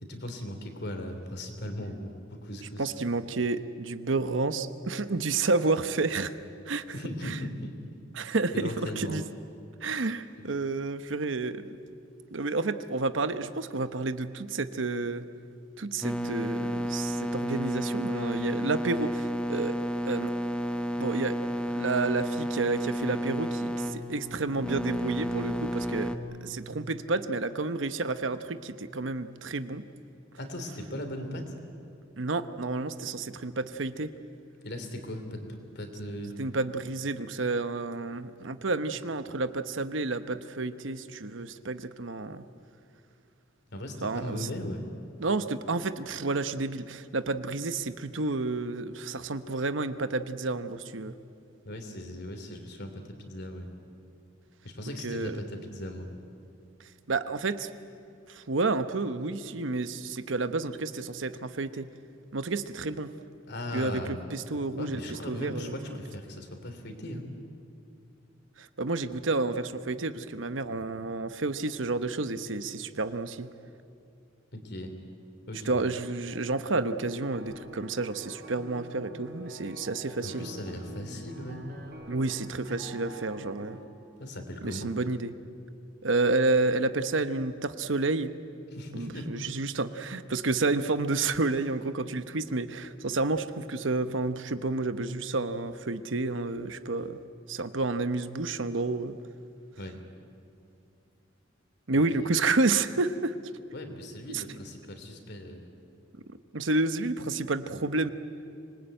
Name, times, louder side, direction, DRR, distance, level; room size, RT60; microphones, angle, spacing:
voice 1, 0.0-2.9 6.9-7.8 8.5-9.2 30.4-31.5 34.6-36.3 43.7-44.8 51.6-53.7 54.6-56.1 63.5-64.2 64.8-67.2 74.5-74.9 75.5-75.8 80.2-81.7 84.2-84.9 88.7-89.3 99.8-100.0 102.2-102.3 103.7-105.7, left 1 dB, 60° left, 6 dB, 3.2 m, -38 dB
voice 2, 2.8-6.3 6.7-6.8 7.3-7.4 8.1-9.2 9.8-11.8 12.3-15.3 15.8-19.7 20.0-20.3 21.0-21.4 21.7-26.1 26.4-29.8 32.2-34.1 36.4-42.4 44.0-44.5 45.2-51.2 55.0-55.4 57.1-57.7 58.3-61.9 62.3-63.1 63.7-65.8 68.6-73.5 75.7-80.5 82.1-83.8 84.6-85.3 86.0-88.3 88.9-97.2 97.5-99.1 101.9-103.4 104.3-104.4 106.5-108.1, right 3 dB, 70° right, 11 dB, 1.0 m, -30 dB
sound 1, 16.0-26.2, equal, 5° left, 1.0 m, -31 dB
sound 2, 76.3-83.9, right 1 dB, 55° right, 3.9 m, -46 dB
25.5 x 20.5 x 9.0 m, 2.5 s
head